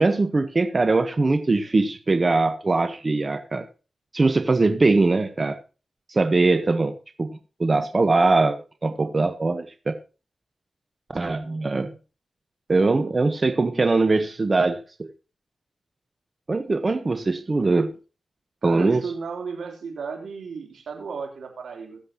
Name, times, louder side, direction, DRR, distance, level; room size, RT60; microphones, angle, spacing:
voice 1, 0.0-3.7 4.1-5.6 6.1-7.3 7.6-10.0 11.1-11.9 12.7-15.1 16.5-18.0 18.6-19.0, right 3 dB, 45° right, 1.2 m, -21 dB
voice 2, 11.2-11.9 18.6-22.0, right 5 dB, 85° right, 3.5 m, -34 dB
22.0 x 7.7 x 3.0 m
cardioid pair, 50°, 0 cm